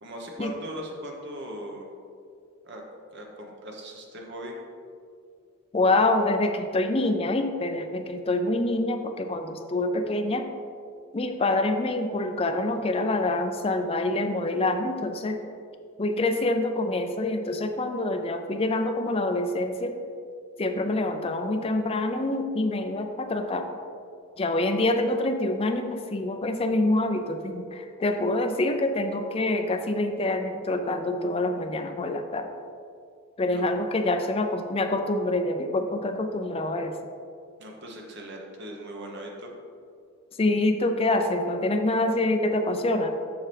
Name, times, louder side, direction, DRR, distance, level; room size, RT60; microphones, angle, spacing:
voice 1, 0.0-1.9 2.6-2.8 3.1-4.6 33.5-33.6 37.6-39.5, right 1 dB, 55° right, 0 dB, 1.1 m, -39 dB
voice 2, 5.7-10.5 11.1-15.4 16.0-20.0 20.6-23.7 24.4-32.5 33.4-37.0 40.4-43.1, left 2 dB, 25° left, 6 dB, 0.4 m, -26 dB
7.1 x 5.8 x 3.4 m, 2.3 s
head